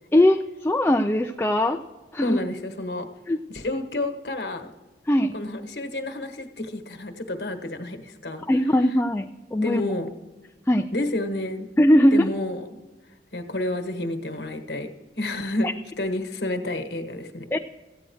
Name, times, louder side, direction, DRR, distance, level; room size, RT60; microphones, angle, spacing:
voice 1, 0.1-1.8 2.1-2.4 3.3-3.4 5.1-5.4 8.5-9.8 10.7-10.9 11.8-12.3 17.5-17.6, left 1 dB, 10° left, 4 dB, 0.4 m, -20 dB
voice 2, 2.2-3.1 3.5-4.7 5.3-8.4 9.6-10.1 10.9-11.7 12.1-12.7 13.3-17.5, left 1 dB, 65° left, 6 dB, 1.3 m, -30 dB
14.0 x 9.0 x 4.7 m, 1.2 s
head